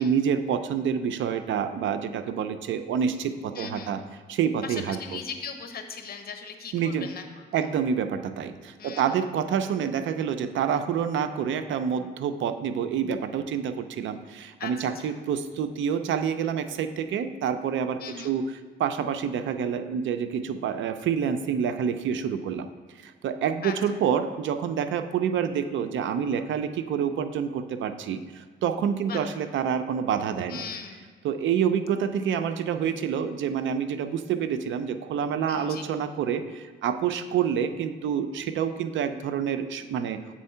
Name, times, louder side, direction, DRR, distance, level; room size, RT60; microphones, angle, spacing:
voice 1, 0.0-4.0 4.3-5.2 6.7-7.1 7.5-18.5 18.8-22.7 23.0-30.6 31.2-40.2, right 7 dB, 70° right, 10 dB, 0.5 m, -27 dB
voice 2, 3.5-4.0 4.6-7.6 8.8-9.2 14.6-15.2 18.0-18.3 23.6-24.0 29.1-29.3 30.5-31.1 35.5-35.9, left 6 dB, 50° left, 6 dB, 0.9 m, -39 dB
7.5 x 4.4 x 5.5 m, 1.5 s
cardioid pair, 90°, 20 cm